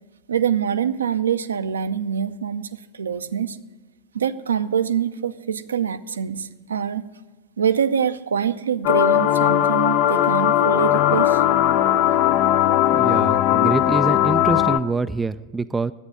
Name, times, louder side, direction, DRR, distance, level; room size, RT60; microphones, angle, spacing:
voice 1, 0.3-3.6 4.1-7.0 7.6-11.4, right 8 dB, 70° right, 11 dB, 0.5 m, -24 dB
sound 1, 8.8-14.8, left 12 dB, 45° left, 0.5 m, -18 dB
voice 2, 12.9-15.9, right 3 dB, 10° right, 12 dB, 0.3 m, -25 dB
11.0 x 8.8 x 8.2 m, 1.2 s
figure-of-eight pair, 90°, 0 cm